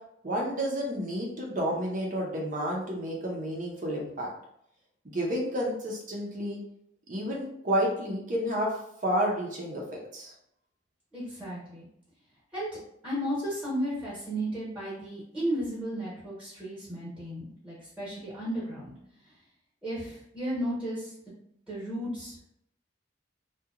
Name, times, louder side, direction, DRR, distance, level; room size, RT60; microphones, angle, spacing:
voice 1, 0.2-4.3 5.0-6.6 7.1-8.8 9.0-10.3, equal, 45° right, -2 dB, 0.6 m, -30 dB
voice 2, 11.1-11.9 12.5-18.9 19.8-21.1 21.7-22.3, equal, 5° right, -8 dB, 1.0 m, -34 dB
2.8 x 2.2 x 2.4 m, 0.74 s
head